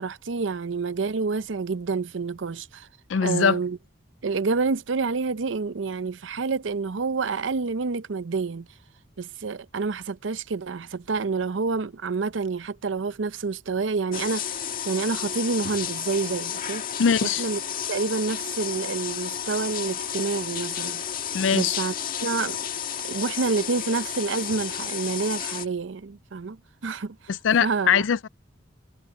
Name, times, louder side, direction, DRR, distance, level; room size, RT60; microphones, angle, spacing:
voice 1, 0.0-2.9 3.2-3.8 4.2-8.7 9.2-16.8 17.2-17.6 17.9-21.0 21.5-21.9 22.2-22.6 23.0-27.2 27.6-28.0, right 4 dB, 75° right, 0.6 m, -28 dB
voice 2, 3.1-3.6 17.0-17.5 21.3-21.8 27.3-28.3, left 7 dB, 75° left, 0.4 m, -22 dB
sound 1, 14.1-25.7, left 8 dB, 50° left, 1.6 m, -32 dB
head